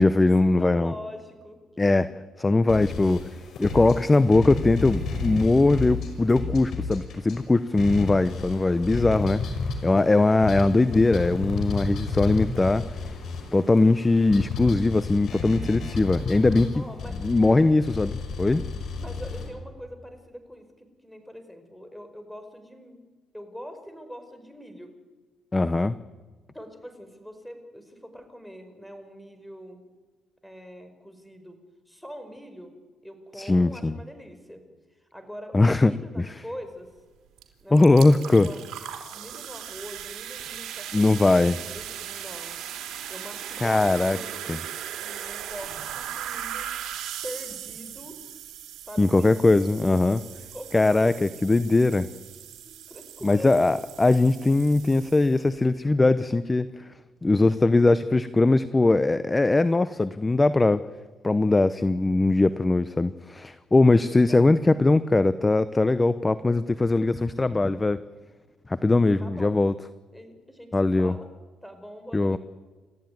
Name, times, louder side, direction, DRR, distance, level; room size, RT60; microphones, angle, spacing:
voice 1, 0.0-0.9 1.8-2.1 2.4-3.3 3.6-9.4 9.8-12.8 13.5-16.7 17.2-18.6 25.5-26.0 33.4-34.0 35.5-36.3 37.7-38.5 40.9-41.6 43.6-44.2 44.5-44.6 49.0-50.2 50.7-52.1 53.2-56.8 57.2-60.8 61.2-68.0 68.7-69.7 70.7-71.1 72.1-72.4, left 2 dB, 20° left, 14 dB, 0.8 m, -21 dB
voice 2, 0.5-1.6 16.7-17.1 19.0-23.1 23.3-24.9 26.5-29.8 30.4-31.6 31.9-32.7 33.0-34.6 35.0-36.9 37.6-38.6 39.1-42.6 43.1-44.6 45.0-46.7 47.2-48.2 48.9-49.6 50.4-51.2 52.6-53.7 63.9-65.0 69.2-69.5 70.1-71.3 71.6-72.4, equal, 5° left, 8 dB, 5.0 m, -43 dB
sound 1, 2.7-7.4 7.8-19.5, left 4 dB, 65° left, 5.8 m, -32 dB
sound 2, 37.4-37.5 37.7-55.5, right 10 dB, 80° right, 3.5 m, -38 dB
29.5 x 14.0 x 9.5 m, 1.3 s
cardioid pair, 90°, 0 cm